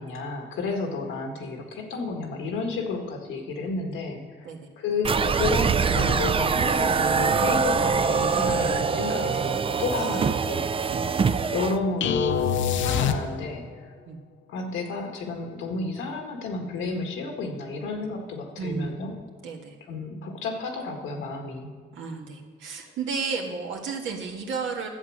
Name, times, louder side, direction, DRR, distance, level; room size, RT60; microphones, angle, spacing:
voice 1, 0.0-4.5 4.8-10.7 11.5-13.7 14.5-19.1 19.9-21.7, left 3 dB, 90° left, 2 dB, 1.7 m, -31 dB
sound 1, 5.0-11.8, right 5 dB, 25° right, 0.5 m, -24 dB
sound 2, 12.0-13.7, left 8 dB, 75° left, 0.6 m, -25 dB
voice 2, 18.6-18.9 19.4-19.8 21.9-24.9, right 5 dB, 75° right, 1 dB, 1.8 m, -33 dB
11.0 x 7.6 x 6.3 m, 1.5 s
cardioid pair, 90°, 20 cm